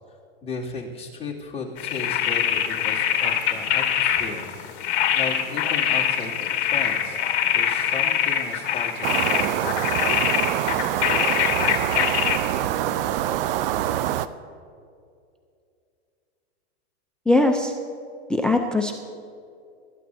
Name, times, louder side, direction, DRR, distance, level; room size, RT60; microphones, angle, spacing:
voice 1, 0.4-4.9 5.2-7.2 7.5-9.6, left 4 dB, 20° left, -4 dB, 2.5 m, -35 dB
sound 1, 1.8-12.4, left 9 dB, 55° left, 1.7 m, -23 dB
sound 2, 9.0-14.3, right 12 dB, 55° right, 0.6 m, -25 dB
voice 2, 17.3-17.7 18.3-19.0, left 2 dB, 5° left, 4 dB, 0.5 m, -20 dB
25.5 x 12.5 x 2.7 m, 2.4 s
hypercardioid pair, 130°, 33 cm